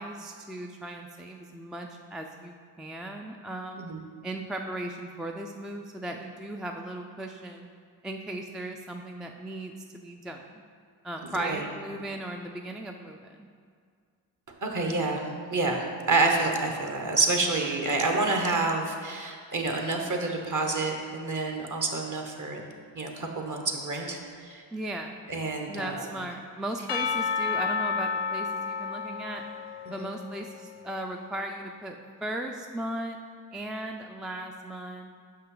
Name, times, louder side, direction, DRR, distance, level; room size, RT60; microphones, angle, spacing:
voice 1, 0.0-3.9 4.2-7.7 8.0-10.6 11.0-13.5 24.7-25.2 25.7-29.4 29.9-33.2 33.5-35.1, right 1 dB, ahead, 2 dB, 0.4 m, -37 dB
voice 2, 11.3-11.6 11.9-12.0 14.6-22.6 22.9-24.6 25.3-26.1 29.9-30.1, right 3 dB, 40° right, 2 dB, 1.2 m, -28 dB
Percussion / Church bell, 26.9-31.2, left 5 dB, 65° left, 0.5 m, -31 dB
5.8 x 5.5 x 3.9 m, 2.1 s
supercardioid pair, 45°, 46 cm